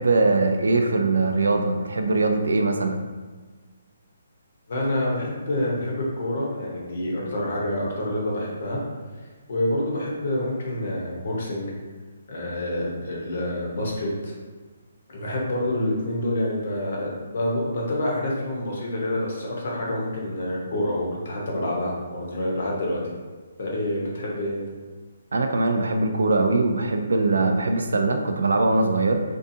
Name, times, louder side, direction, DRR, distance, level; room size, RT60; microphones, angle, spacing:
voice 1, 0.0-3.0 25.3-29.2, right 3 dB, 90° right, 5 dB, 0.4 m, -21 dB
voice 2, 4.7-8.8 9.5-11.7 12.3-14.3 15.1-23.0 23.6-24.6, left 1 dB, 45° left, -3 dB, 0.7 m, -27 dB
2.6 x 2.3 x 2.5 m, 1.4 s
hypercardioid pair, 180°, 0 cm